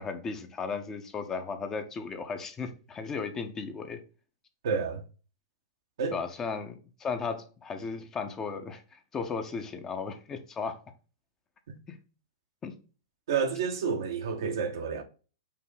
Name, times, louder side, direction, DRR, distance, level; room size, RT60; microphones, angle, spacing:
voice 1, 0.0-4.0 6.1-10.8 11.9-12.0 12.6-12.7, left 5 dB, 20° left, 0.7 m, -35 dB
voice 2, 4.6-5.0 6.0-6.2 13.3-15.0, right 6 dB, 70° right, 0.8 m, -29 dB
5.6 x 2.0 x 3.9 m
hypercardioid pair, 115°, 2 cm